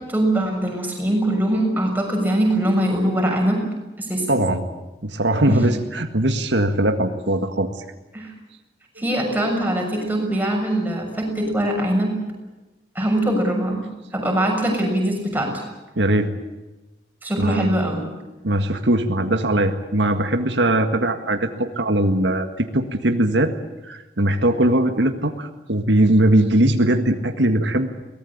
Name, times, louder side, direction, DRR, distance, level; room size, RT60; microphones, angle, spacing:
voice 1, 0.1-3.6 4.0-4.3 5.5-5.6 8.1-8.3 9.0-12.1 12.9-13.8 14.1-15.5 17.2-18.0, right 1 dB, 10° right, 1 dB, 6.7 m, -22 dB
voice 2, 4.3-4.6 5.0-7.8 16.0-16.3 17.4-17.7 18.4-23.5 23.8-27.9, right 1 dB, 90° right, 6 dB, 1.8 m, -20 dB
22.5 x 19.0 x 8.7 m, 1.1 s
head